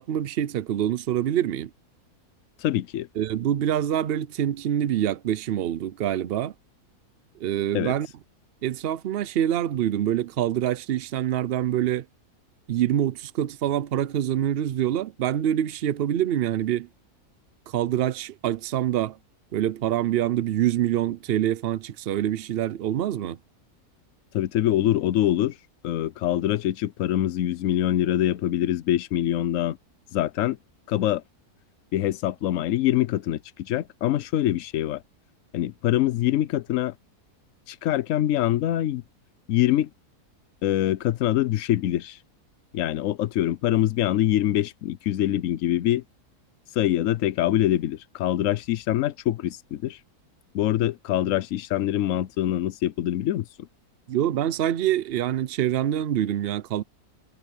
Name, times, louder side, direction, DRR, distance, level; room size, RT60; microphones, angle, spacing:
voice 1, 0.0-1.7 3.2-6.5 7.4-8.1 8.6-12.0 12.7-16.9 17.7-19.2 19.5-23.4 54.1-56.8, right 11 dB, 60° right, 0.6 m, -25 dB
voice 2, 2.6-3.1 7.7-7.9 24.3-25.6 25.8-29.8 30.1-30.6 30.9-31.2 31.9-35.0 35.5-36.9 37.7-39.0 39.5-39.9 40.6-42.2 42.7-46.0 46.8-50.0 50.5-53.4, left 13 dB, 65° left, 0.9 m, -24 dB
omnidirectional pair, 1.6 m